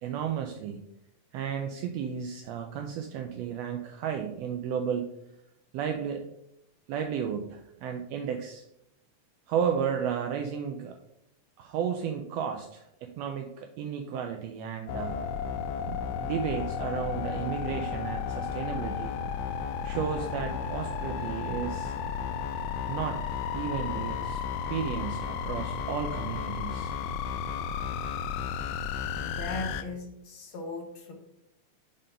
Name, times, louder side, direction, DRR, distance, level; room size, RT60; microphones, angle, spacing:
voice 1, 0.0-0.9 1.3-5.1 5.7-6.3 6.9-8.6 9.5-11.0 11.6-15.3 15.9-19.2 19.8-22.0 22.9-23.2 23.5-24.4 24.7-26.9, right 8 dB, 80° right, 4 dB, 1.5 m, -33 dB
sound 1, 14.9-29.8, left 7 dB, 90° left, 1.4 m, -33 dB
voice 2, 29.1-31.1, left 3 dB, 65° left, 2 dB, 1.3 m, -38 dB
5.2 x 3.8 x 5.5 m, 0.82 s
omnidirectional pair, 3.3 m